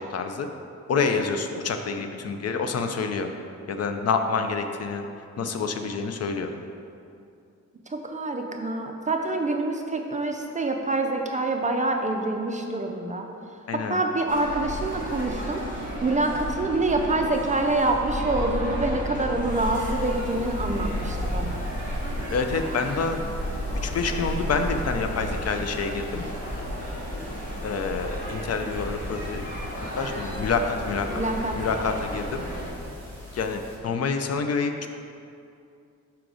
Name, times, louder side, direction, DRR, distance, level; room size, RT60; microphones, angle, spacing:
voice 1, 0.1-0.5 0.9-3.3 3.7-5.1 5.4-6.5 13.7-14.0 22.3-23.2 23.8-26.2 27.6-29.5 30.0-31.2 31.6-32.4 33.3-34.9, left 4 dB, 55° left, 6 dB, 0.4 m, -27 dB
voice 2, 7.9-13.3 13.7-21.6 31.1-31.6, right 2 dB, 25° right, 3 dB, 0.4 m, -26 dB
sound 1, 14.3-32.7, equal, 25° left, 1.2 m, -32 dB
sound 2, 19.6-33.8, left 1 dB, 5° left, 1.2 m, -43 dB
5.8 x 3.8 x 4.8 m, 2.5 s
wide cardioid pair, 135°, 30 cm